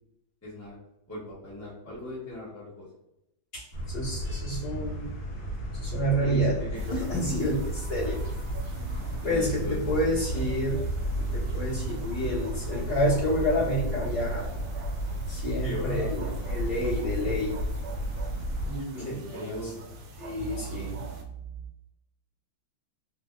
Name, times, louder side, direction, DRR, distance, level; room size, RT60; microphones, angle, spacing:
voice 1, 0.4-0.7 1.1-2.9 6.2-7.4 9.2-10.4 15.6-16.1 18.6-19.7, left 1 dB, 20° left, -8 dB, 0.4 m, -38 dB
voice 2, 3.5-5.0 5.8-6.6 6.9-7.6 7.9-8.2 9.2-10.8 11.2-14.5 15.3-17.5 19.1-19.2 19.4-19.7 20.2-21.0, equal, 50° left, -10 dB, 1.9 m, -29 dB
sound 1, 3.7-18.8, right 1 dB, 75° left, 1.4 m, -33 dB
sound 2, 6.7-21.2, right 1 dB, 75° right, 1.2 m, -44 dB
4.0 x 2.2 x 2.2 m, 0.86 s
omnidirectional pair, 2.3 m